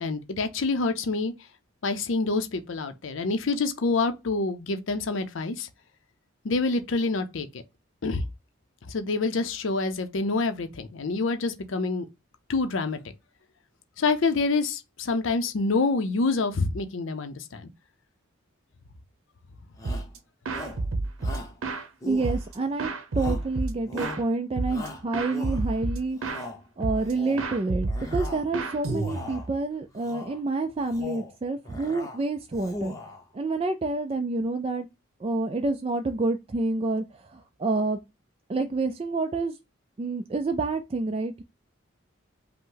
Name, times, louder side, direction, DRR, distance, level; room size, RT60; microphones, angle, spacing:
voice 1, 0.0-1.3 1.8-5.7 6.4-7.6 8.0-8.2 8.9-12.0 12.5-13.0 14.0-17.7, left 3 dB, 70° left, 0.6 m, -27 dB
Shout, 19.8-20.1 20.5-20.9 21.2-21.6 22.0-22.7 23.2-23.5 23.9-24.3 24.7-25.8 26.2-26.6 27.0-27.5 27.9-28.5 28.8-29.5 30.0-30.4 30.8-31.3 31.7-32.2 32.5-33.2, left 2 dB, 15° left, 0.8 m, -39 dB
sound 1, 19.8-20.2 20.4-21.9 22.2-24.2 24.6-24.9 25.1-26.5 26.8-27.1 27.4-29.5, right 3 dB, 85° right, 0.7 m, -30 dB
voice 2, 22.1-26.2 26.8-33.0 33.3-34.9 35.2-38.0 38.5-39.6 40.0-41.4, right 3 dB, 30° right, 0.3 m, -28 dB
5.3 x 2.1 x 3.8 m
head